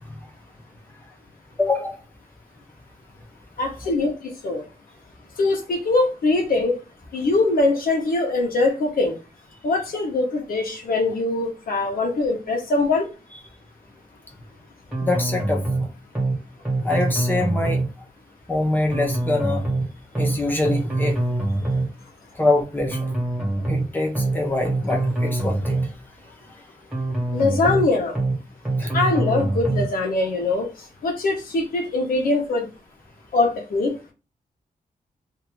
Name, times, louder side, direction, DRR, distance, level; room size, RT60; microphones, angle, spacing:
voice 1, 1.6-2.0 15.0-15.6 16.8-17.8 18.5-19.6 20.2-21.2 22.4-23.1 23.7-25.8 28.8-28.9, left 2 dB, 10° left, 1 dB, 0.8 m, -24 dB
voice 2, 3.6-4.6 5.4-6.8 7.1-9.1 9.6-13.1 27.3-28.1 28.9-30.7 31.0-32.7 33.3-33.9, left 2 dB, 80° left, 1 dB, 1.2 m, -22 dB
sound 1, 14.9-15.8 16.1-16.4 16.6-17.9 18.9-19.8 20.1-20.4 20.6-21.9 22.9-23.8 24.1-24.4 24.6-25.9 26.9-27.8 28.1-28.4 28.6-29.9, right 2 dB, 5° right, 1.6 m, -24 dB
2.8 x 2.8 x 3.6 m, 0.30 s
wide cardioid pair, 160°, 15 cm